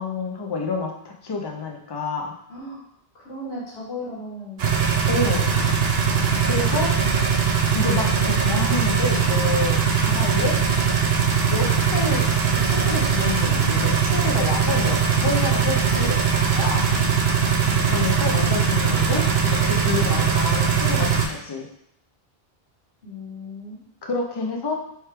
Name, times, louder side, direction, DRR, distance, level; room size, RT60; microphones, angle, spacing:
voice 1, 0.0-2.4 5.1-5.5 6.4-6.9 7.7-10.6 11.5-16.8 17.9-21.7 24.0-24.7, left 4 dB, 30° left, 1 dB, 0.5 m, -28 dB
voice 2, 2.5-2.8 3.1-4.6 5.3-5.8 17.6-17.9 23.0-23.8, left 1 dB, 80° left, -5 dB, 1.6 m, -36 dB
sound 1, 4.6-21.2, right 6 dB, 80° right, 0.9 m, -21 dB
4.4 x 3.1 x 3.3 m, 0.73 s
omnidirectional pair, 1.0 m